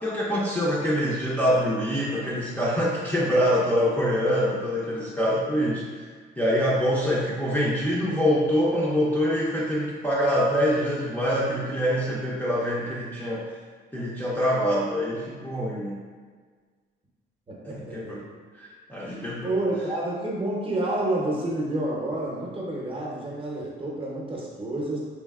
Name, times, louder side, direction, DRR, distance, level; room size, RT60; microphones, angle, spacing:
voice 1, 0.0-5.8 6.4-13.4 13.9-15.9 17.7-18.2 18.6-19.5, equal, 10° left, -7 dB, 0.5 m, -25 dB
voice 2, 17.5-18.2 19.4-25.0, right 1 dB, 25° right, -4 dB, 0.8 m, -29 dB
3.2 x 2.5 x 2.3 m, 1.5 s
cardioid pair, 90°, 20 cm